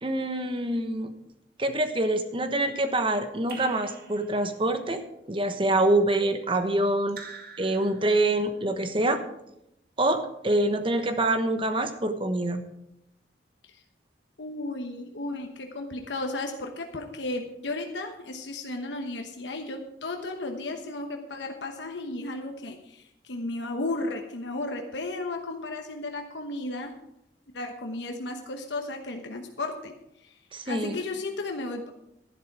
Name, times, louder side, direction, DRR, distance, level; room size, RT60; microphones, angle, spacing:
voice 1, 0.0-1.1 1.6-5.0 5.3-7.2 7.6-9.2 10.0-12.6 30.5-31.0, right 1 dB, 30° right, 8 dB, 1.1 m, -25 dB
Raindrop / Drip, 3.5-4.7 7.1-8.4, right 4 dB, 60° right, 2.1 m, -45 dB
voice 2, 14.4-26.9 27.5-30.4 30.6-31.9, left 2 dB, 80° left, 3 dB, 1.1 m, -34 dB
12.0 x 11.0 x 4.8 m, 0.83 s
head